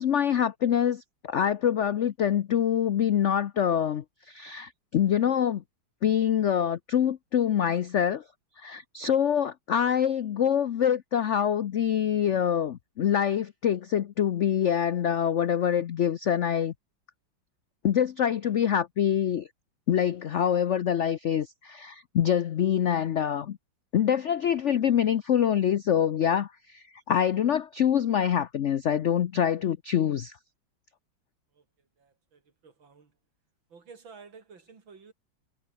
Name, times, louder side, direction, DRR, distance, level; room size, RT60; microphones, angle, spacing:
voice 1, 0.0-5.6 6.0-8.2 8.6-16.7 17.8-19.5 19.9-23.6 23.9-30.3, left 9 dB, 80° left, 0.6 m, -25 dB
voice 2, 31.5-33.2 33.7-35.1, right 5 dB, 75° right, 3.9 m, -52 dB
omnidirectional pair, 2.1 m